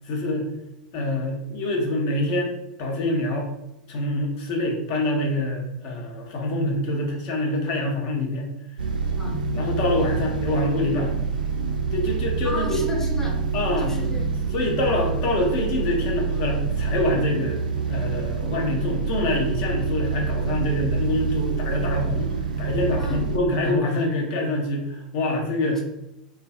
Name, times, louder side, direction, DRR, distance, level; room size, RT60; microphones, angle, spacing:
voice 1, 0.0-0.5 0.9-2.5 2.8-3.5 3.9-8.5 9.5-11.2 11.9-12.8 13.5-14.0 14.5-17.6 17.9-22.3 22.6-25.8, left 1 dB, 50° left, -1 dB, 0.7 m, -25 dB
sound 1, 8.8-23.4, right 5 dB, 75° right, 0.4 m, -27 dB
voice 2, 12.4-13.4 13.8-14.4 23.0-23.2 25.6-25.8, left 1 dB, 10° left, -2 dB, 0.6 m, -32 dB
2.4 x 2.2 x 2.4 m, 0.93 s
figure-of-eight pair, 90°, 4 cm